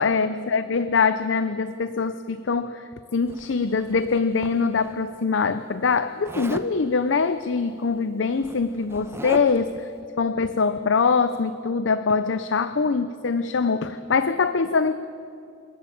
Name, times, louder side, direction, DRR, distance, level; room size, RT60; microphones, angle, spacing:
voice 1, 0.0-9.9 10.2-14.9, left 4 dB, 80° left, 12 dB, 0.6 m, -23 dB
Zipper (clothing), 3.3-4.9 6.2-6.7 7.9-8.0 8.3-9.7, right 1 dB, 15° right, 0.8 m, -38 dB
28.0 x 11.0 x 8.6 m, 2.5 s
head